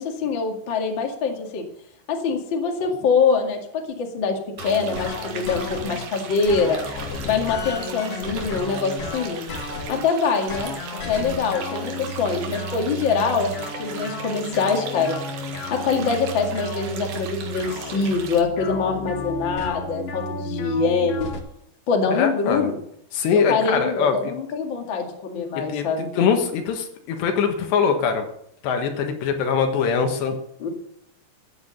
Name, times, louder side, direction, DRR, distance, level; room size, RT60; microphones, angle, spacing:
voice 1, 0.0-1.6 2.1-3.6 4.0-6.8 7.2-9.4 9.9-10.7 11.1-15.2 15.8-21.3 21.9-22.8 23.3-26.1 30.6-30.7, left 5 dB, 40° left, 2 dB, 1.9 m, -24 dB
sound 1, 4.6-6.0 6.4-10.1 10.5-21.4, left 2 dB, 60° left, 1.6 m, -33 dB
sound 2, 4.6-18.4, right 6 dB, 65° right, 3.4 m, -38 dB
voice 2, 22.1-22.7 23.1-24.3 25.6-25.9 26.2-28.3 28.6-30.4, left 6 dB, 75° left, 5 dB, 3.6 m, -22 dB
13.5 x 9.2 x 6.8 m, 0.69 s
omnidirectional pair, 5.1 m